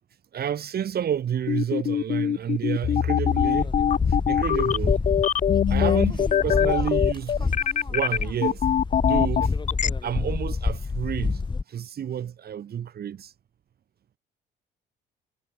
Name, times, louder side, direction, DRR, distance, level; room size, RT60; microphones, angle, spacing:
voice 1, 0.3-3.7 4.1-5.0 5.7-7.5 7.9-8.6 9.0-9.5 10.0-11.4 11.7-13.3, right 9 dB, 55° right, 4.0 m, -30 dB
sound 1, 1.5-9.9, left 9 dB, 40° left, 0.5 m, -23 dB
sound 2, 3.2-11.6, left 4 dB, 25° left, 1.5 m, -28 dB
supercardioid pair, 70°, 19 cm